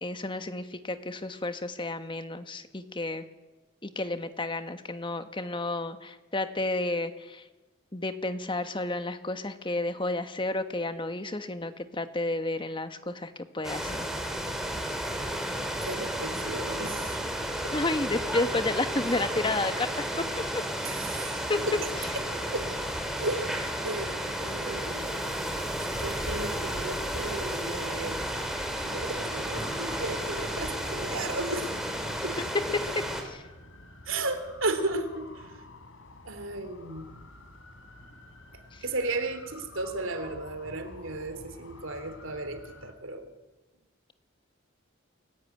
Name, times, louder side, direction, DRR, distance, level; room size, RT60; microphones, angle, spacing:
voice 1, 0.0-3.2 3.8-7.4 7.9-14.1 17.7-20.6 21.5-21.6 32.5-33.4, left 2 dB, 25° left, 9 dB, 1.4 m, -31 dB
sound 1, 13.6-33.2, equal, ahead, 3.6 m, -32 dB
voice 2, 15.8-17.4 17.6-17.7 20.8-22.2 22.5-22.7 23.1-23.5 23.8-25.4 25.8-28.3 28.8-31.8 32.2-32.4 34.0-35.6 36.2-37.2 38.8-43.3, right 2 dB, 85° right, 9 dB, 2.9 m, -35 dB
sound 2, 29.3-42.9, left 2 dB, 85° left, 3.4 m, -49 dB
28.5 x 15.5 x 9.4 m, 1.2 s
head